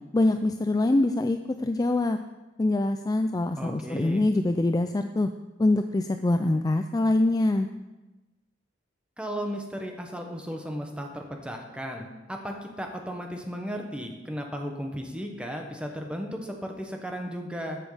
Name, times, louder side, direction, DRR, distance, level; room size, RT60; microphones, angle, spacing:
voice 1, 0.1-2.2 2.6-5.3 5.6-7.7, left 2 dB, 20° left, 7 dB, 0.4 m, -24 dB
voice 2, 3.6-4.3 9.2-17.8, equal, 5° right, 2 dB, 1.2 m, -35 dB
14.0 x 6.3 x 5.0 m, 1.1 s
head